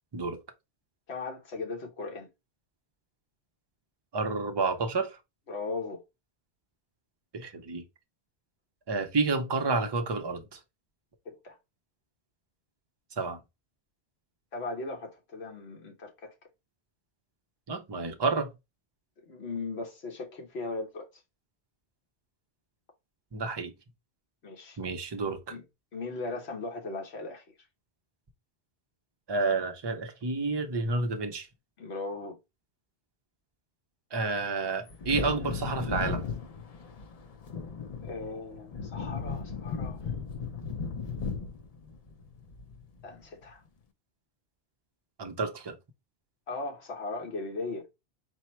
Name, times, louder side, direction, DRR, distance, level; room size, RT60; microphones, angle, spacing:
voice 1, 1.1-2.3 5.5-6.0 11.2-11.6 14.5-16.3 19.3-21.1 24.4-24.8 25.5-25.6 25.9-27.4 31.8-32.4 38.0-40.0 43.0-43.6 46.5-47.9, left 3 dB, 75° left, 1.3 m, -38 dB
voice 2, 4.1-5.2 7.3-7.9 8.9-10.6 13.2-13.4 17.7-18.5 23.3-23.7 24.8-25.5 29.3-31.5 34.1-36.3 45.2-45.8, right 3 dB, 35° right, 0.4 m, -30 dB
Wind / Thunder, 34.9-43.1 43.4-43.5, left 5 dB, 45° left, 0.5 m, -36 dB
4.3 x 2.1 x 4.3 m
omnidirectional pair, 1.1 m